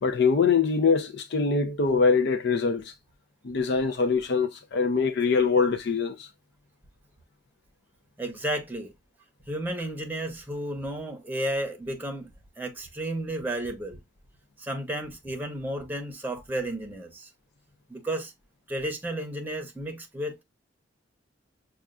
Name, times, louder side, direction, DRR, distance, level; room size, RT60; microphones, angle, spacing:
voice 1, 0.0-2.9 3.4-6.3, left 5 dB, 60° left, 0.5 m, -23 dB
voice 2, 8.2-8.9 9.5-12.3 12.6-14.0 14.6-17.3 17.9-18.3 18.7-20.4, right 1 dB, 10° right, 0.8 m, -32 dB
6.3 x 2.4 x 2.3 m
head